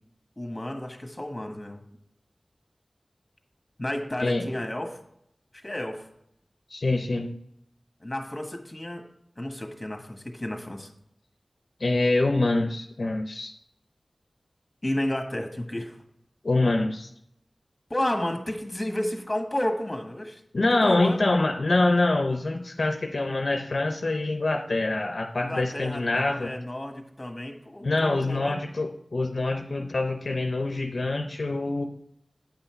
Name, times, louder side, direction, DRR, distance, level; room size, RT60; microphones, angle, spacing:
voice 1, 0.4-1.8 3.8-5.0 5.6-6.1 8.0-9.0 9.4-10.9 14.8-16.0 17.9-20.4 20.7-21.2 25.4-28.6, left 1 dB, 25° left, 4 dB, 1.5 m, -32 dB
voice 2, 6.7-7.4 11.8-13.5 16.4-17.1 20.5-26.5 27.8-31.8, left 2 dB, 70° left, 4 dB, 0.6 m, -25 dB
8.9 x 5.6 x 4.5 m, 0.76 s
wide cardioid pair, 60°, 0 cm